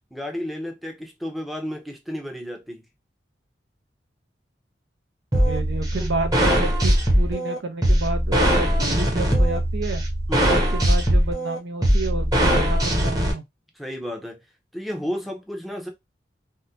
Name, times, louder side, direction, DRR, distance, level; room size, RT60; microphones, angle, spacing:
voice 1, 0.1-2.8 6.0-6.1 10.3-10.7 13.8-14.4 14.7-15.9, equal, ahead, 0.6 m, -32 dB
sound 1, 5.3-13.3, equal, 20° right, 0.9 m, -20 dB
voice 2, 5.3-10.0 10.5-13.4, right 3 dB, 80° right, 0.6 m, -30 dB
3.6 x 2.1 x 2.7 m
head